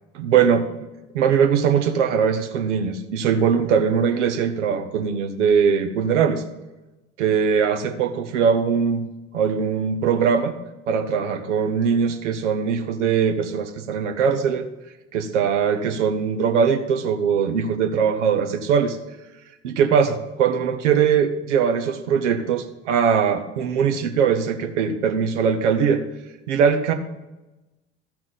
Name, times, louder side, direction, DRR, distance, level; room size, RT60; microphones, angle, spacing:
voice 1, 0.2-0.9 1.1-6.4 7.2-9.1 9.3-10.5 10.9-14.7 15.1-19.0 19.6-26.0 26.5-26.9, right 7 dB, 70° right, 7 dB, 1.1 m, -21 dB
13.5 x 6.0 x 3.9 m, 1.0 s
figure-of-eight pair, 65°, 38 cm